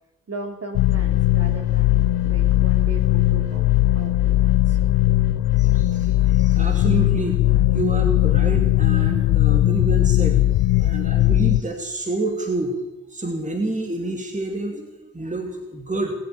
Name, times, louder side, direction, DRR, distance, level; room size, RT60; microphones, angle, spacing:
voice 1, 0.3-3.7 3.9-4.8, right 2 dB, 40° right, 3 dB, 3.5 m, -37 dB
sound 1, 0.7-11.6, left 15 dB, 80° left, 0.6 m, -18 dB
voice 2, 5.5-12.8 13.1-16.1, right 2 dB, 20° right, 3 dB, 2.6 m, -28 dB
19.0 x 8.4 x 8.6 m, 1.1 s
supercardioid pair, 50°, 36 cm